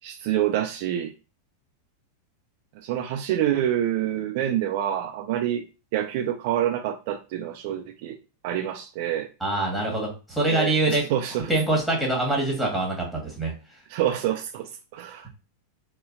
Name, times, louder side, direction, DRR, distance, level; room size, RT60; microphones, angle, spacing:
voice 1, 0.0-1.1 2.8-5.6 5.9-8.2 8.4-9.3 10.5-11.5 13.9-15.3, right 11 dB, 50° right, 0.3 m, -27 dB
voice 2, 9.4-11.0 11.5-13.5, right 2 dB, ahead, 1.3 m, -24 dB
3.8 x 2.2 x 2.5 m
figure-of-eight pair, 90°, 0 cm